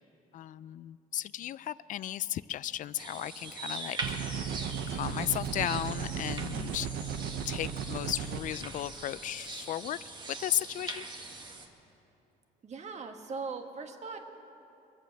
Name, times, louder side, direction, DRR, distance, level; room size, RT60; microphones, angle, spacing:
voice 1, 0.3-4.2 4.9-6.9 7.5-10.1 10.4-11.1, left 12 dB, 50° left, 18 dB, 0.4 m, -35 dB
sound 1, 3.0-11.7, right 3 dB, 25° right, 1.5 m, -42 dB
sound 2, 4.0-8.4, right 7 dB, 70° right, 0.9 m, -35 dB
voice 2, 12.6-14.2, right 4 dB, 40° right, 5 dB, 1.5 m, -39 dB
23.0 x 8.1 x 7.7 m, 2.9 s
cardioid pair, 110°, 17 cm